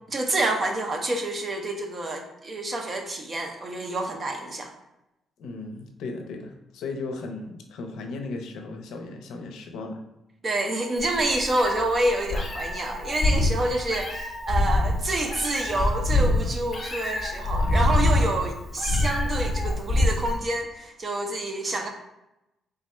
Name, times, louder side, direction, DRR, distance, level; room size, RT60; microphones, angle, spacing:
voice 1, 0.1-4.7 10.4-21.9, right 2 dB, 25° right, 4 dB, 0.5 m, -28 dB
voice 2, 5.4-10.0, left 3 dB, 80° left, 4 dB, 0.5 m, -36 dB
Meow, 11.0-20.4, left 2 dB, 30° left, 0.6 m, -25 dB
3.5 x 2.2 x 4.2 m, 0.90 s
cardioid pair, 160°, 0 cm